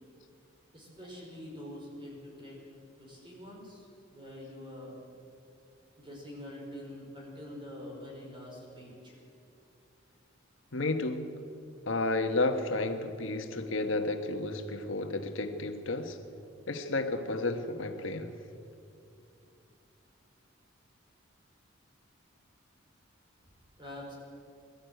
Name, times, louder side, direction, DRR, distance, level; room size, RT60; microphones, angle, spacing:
voice 1, 0.7-2.6 3.0-5.0 6.0-9.1 23.8-24.1, left 1 dB, 25° right, 5.4 m, -45 dB
voice 2, 10.7-11.3 11.8-16.2 16.7-18.4, left 2 dB, 80° left, 1.4 m, -32 dB
21.5 x 13.0 x 9.3 m
head